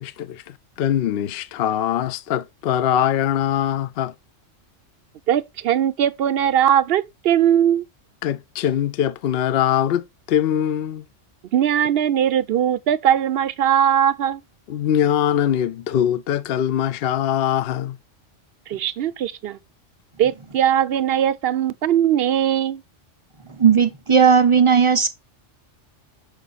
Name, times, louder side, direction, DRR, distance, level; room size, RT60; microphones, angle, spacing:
voice 1, 0.0-4.1 8.2-11.1 14.7-18.0, left 10 dB, 60° left, 0.7 m, -22 dB
voice 2, 5.3-7.9 11.5-14.4 18.7-19.6 20.2-22.8, right 10 dB, 60° right, 0.7 m, -20 dB
voice 3, 23.6-25.1, right 6 dB, 30° right, 0.7 m, -15 dB
6.7 x 4.9 x 4.0 m
omnidirectional pair, 1.3 m